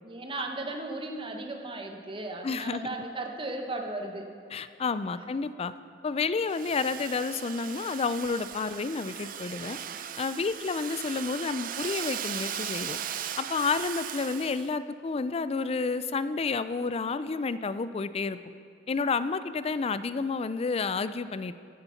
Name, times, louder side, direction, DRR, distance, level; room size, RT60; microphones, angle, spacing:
voice 1, 0.0-4.3 5.1-5.2, right 2 dB, 30° right, 3 dB, 1.1 m, -36 dB
voice 2, 2.4-2.8 4.5-5.7 6.0-9.8 10.2-13.0 13.4-18.4 18.9-21.5, left 4 dB, 35° left, 14 dB, 0.4 m, -30 dB
Domestic sounds home sounds, 6.5-14.7, right 9 dB, 50° right, 0.5 m, -38 dB
15.0 x 6.9 x 5.7 m, 2.5 s
head